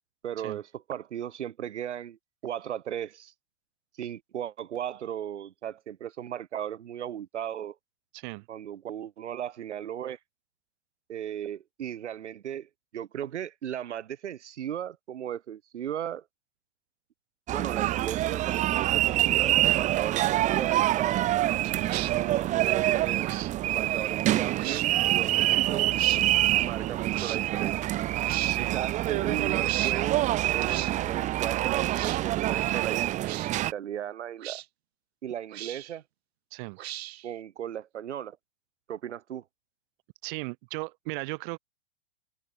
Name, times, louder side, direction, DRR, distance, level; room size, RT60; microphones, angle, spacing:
voice 1, 0.2-3.3 4.0-7.8 8.5-10.2 11.1-16.2 17.5-21.3 22.0-23.3 23.7-25.9 26.6-27.9 28.6-30.2 30.5-33.0 33.7-34.6 35.2-36.0 37.2-38.4 38.9-39.4, right 10 dB, 80° right, 1.4 m, -36 dB
voice 2, 8.1-8.5 21.6-21.9 28.5-28.8 36.5-36.8 40.2-41.6, right 26 dB, 45° right, 1.1 m, -36 dB
sound 1, 17.5-33.7, right 15 dB, 20° right, 0.6 m, -26 dB
sound 2, 21.8-22.1 23.2-23.5 24.5-24.9 26.0-26.2 27.1-27.4 28.2-28.6 29.6-30.0 30.7-30.9 31.9-32.2 33.2-33.5 34.4-34.7 35.5-36.0 36.8-37.3, right 14 dB, 60° right, 2.4 m, -37 dB
hypercardioid pair, 115°, 34 cm